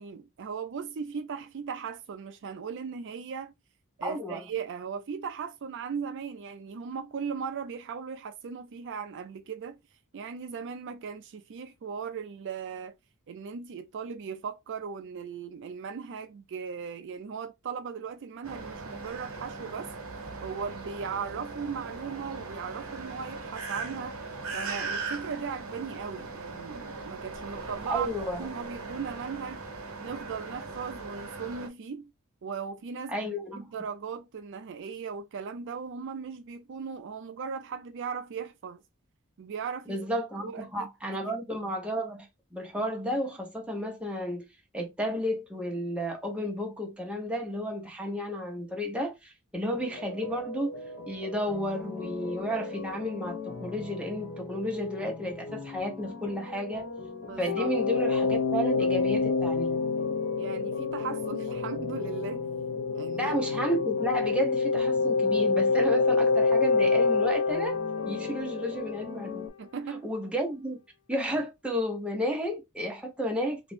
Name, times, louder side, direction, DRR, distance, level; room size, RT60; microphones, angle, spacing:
voice 1, 0.0-3.5 4.0-9.8 10.1-12.9 13.3-19.9 20.4-24.2 24.5-28.1 28.4-29.6 30.0-32.1 32.4-33.2 33.6-38.8 39.4-40.1 40.4-41.3 57.3-57.7 60.4-62.5 62.9-63.3 69.6-70.1, right 6 dB, 55° right, 0.4 m, -38 dB
voice 2, 4.0-4.5 27.9-28.5 33.1-33.7 39.9-44.4 44.7-50.7 51.1-56.8 57.4-59.8 63.2-67.8 68.1-69.5 70.0-70.8 71.1-73.6, equal, 5° right, 0.8 m, -32 dB
sound 1, 18.4-31.7, right 3 dB, 70° right, 1.0 m, -39 dB
sound 2, 49.5-69.5, left 2 dB, 45° left, 1.3 m, -40 dB
sound 3, 57.5-69.1, left 4 dB, 75° left, 0.5 m, -27 dB
3.0 x 2.5 x 3.4 m
head